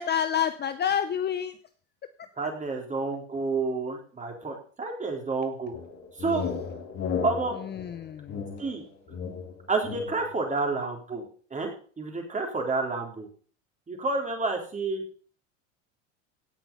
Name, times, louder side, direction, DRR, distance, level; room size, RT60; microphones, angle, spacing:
voice 1, 0.0-1.6 7.5-8.4, left 9 dB, 25° left, 11 dB, 0.8 m, -28 dB
voice 2, 2.4-5.7 6.2-6.4 7.2-7.6 8.6-8.8 9.7-11.2 11.5-13.3 13.9-15.0, right 3 dB, 20° right, 2 dB, 3.7 m, -29 dB
sound 1, 5.7-10.4, left 6 dB, 45° left, 3.5 m, -35 dB
16.5 x 6.0 x 5.4 m, 0.43 s
hypercardioid pair, 95°, 38 cm